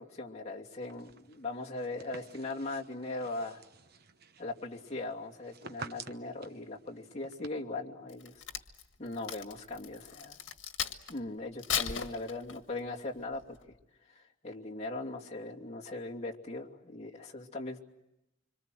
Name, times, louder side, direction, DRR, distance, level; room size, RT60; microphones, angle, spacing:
voice 1, 0.0-3.6 4.4-8.4 9.0-10.4 11.1-13.6 14.1-17.8, left 2 dB, 35° left, -1 dB, 2.8 m, -39 dB
sound 1, 0.8-7.5, right 5 dB, 55° right, 1.1 m, -51 dB
Crack, 8.1-11.2 11.6-12.8 13.3-13.6, left 8 dB, 80° left, 1.7 m, -36 dB
26.5 x 26.0 x 7.8 m, 0.89 s
head